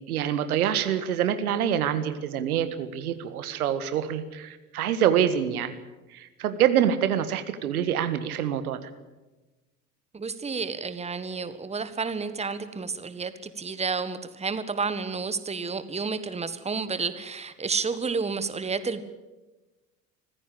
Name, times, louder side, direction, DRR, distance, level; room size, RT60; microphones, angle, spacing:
voice 1, 0.1-5.7 6.1-8.9, right 9 dB, 75° right, 11 dB, 1.8 m, -26 dB
voice 2, 10.1-19.0, right 4 dB, 15° right, 12 dB, 1.6 m, -31 dB
25.0 x 15.5 x 8.8 m, 1.1 s
figure-of-eight pair, 75°, 45 cm